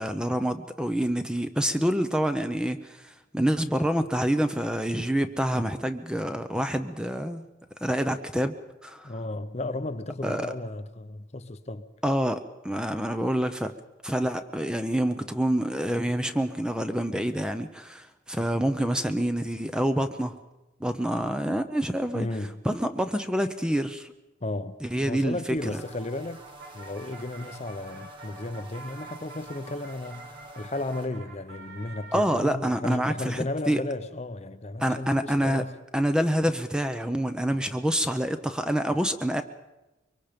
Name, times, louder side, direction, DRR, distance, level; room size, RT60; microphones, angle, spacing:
voice 1, 0.0-7.5 7.8-8.5 8.8-9.1 10.2-10.5 12.0-13.7 14.0-20.3 20.8-22.3 22.6-24.1 24.8-25.8 32.1-33.8 34.8-35.6 35.9-39.4, equal, 5° right, 0.7 m, -27 dB
voice 2, 9.0-11.9 22.1-22.6 24.4-24.8 25.1-26.4 26.7-35.8, left 2 dB, 35° left, 0.7 m, -34 dB
sound 1, 25.6-31.1, right 2 dB, 25° right, 1.9 m, -47 dB
sound 2, 26.3-32.3, right 3 dB, 55° right, 3.2 m, -48 dB
24.0 x 23.5 x 5.2 m
head